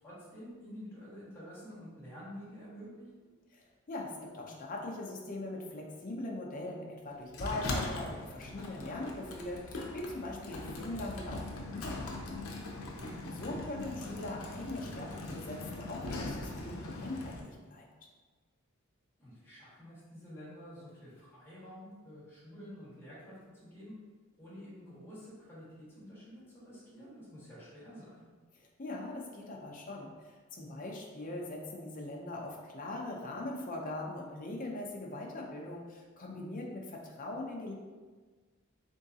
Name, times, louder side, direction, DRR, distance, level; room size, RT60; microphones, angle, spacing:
voice 1, 0.0-3.2 12.9-13.7 19.2-23.9 24.3-28.2, equal, 10° left, -10 dB, 1.4 m, -49 dB
voice 2, 3.5-12.4 13.3-17.9 28.5-37.7, left 2 dB, 40° left, -1 dB, 0.6 m, -41 dB
Sliding door, 7.3-17.4, left 2 dB, 85° left, 0.6 m, -41 dB
3.7 x 3.6 x 2.7 m, 1.4 s
head